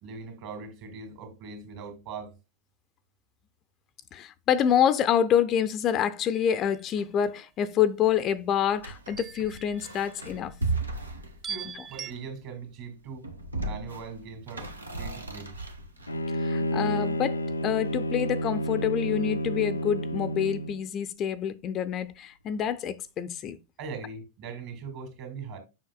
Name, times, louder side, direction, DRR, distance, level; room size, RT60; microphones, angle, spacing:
voice 1, 0.0-2.3 11.5-13.3 13.6-14.7 15.0-15.5 23.8-25.6, right 5 dB, 45° right, 2.4 m, -40 dB
voice 2, 4.1-10.6 16.4-23.6, left 9 dB, 30° left, 0.5 m, -27 dB
sound 1, 6.3-6.9 9.1-10.4 11.4-12.1, right 8 dB, 20° right, 0.4 m, -41 dB
sound 2, 8.7-12.4 13.0-16.1, right 2 dB, 80° right, 1.0 m, -36 dB
Bowed string instrument, 16.1-20.8, left 1 dB, 80° left, 0.5 m, -30 dB
7.3 x 5.8 x 2.3 m
figure-of-eight pair, 90°, 0 cm